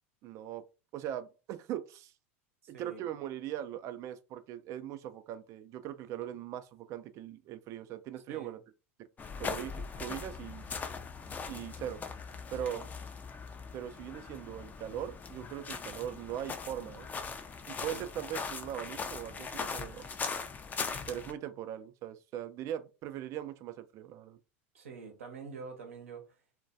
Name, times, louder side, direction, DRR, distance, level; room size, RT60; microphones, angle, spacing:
voice 1, 0.2-0.6 0.9-2.1 2.7-8.6 9.4-10.6 11.5-12.0 12.5-12.8 13.7-17.1 17.7-20.1 21.1-24.4, right 11 dB, 45° right, 0.4 m, -40 dB
voice 2, 2.7-3.1 8.3-8.5 12.6-12.9 17.9-18.0 24.7-26.3, right 5 dB, 85° right, 0.7 m, -46 dB
sound 1, 9.2-21.3, left 5 dB, 25° left, 0.4 m, -40 dB
2.2 x 2.1 x 2.6 m
hypercardioid pair, 90°, 7 cm